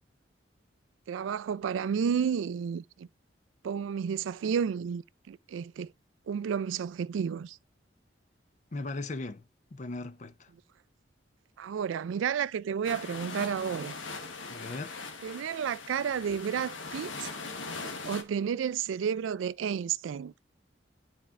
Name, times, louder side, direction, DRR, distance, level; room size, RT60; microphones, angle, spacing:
voice 1, 1.1-3.1 3.6-5.9 6.3-7.6 11.6-13.9 15.2-17.3 18.0-20.3, right 7 dB, 90° right, 0.3 m, -31 dB
voice 2, 8.7-9.4 9.7-10.5 14.5-14.9, left 2 dB, 40° left, 0.5 m, -38 dB
sound 1, 12.8-18.2, left 4 dB, 90° left, 1.2 m, -40 dB
11.0 x 4.4 x 2.4 m
head